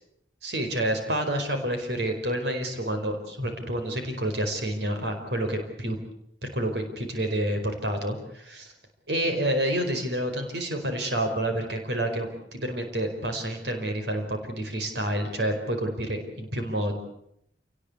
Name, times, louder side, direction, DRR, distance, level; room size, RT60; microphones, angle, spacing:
voice 1, 0.4-6.0 6.4-8.7 9.1-16.9, right 1 dB, 70° right, 5 dB, 4.8 m, -29 dB
29.0 x 18.5 x 8.4 m, 0.76 s
head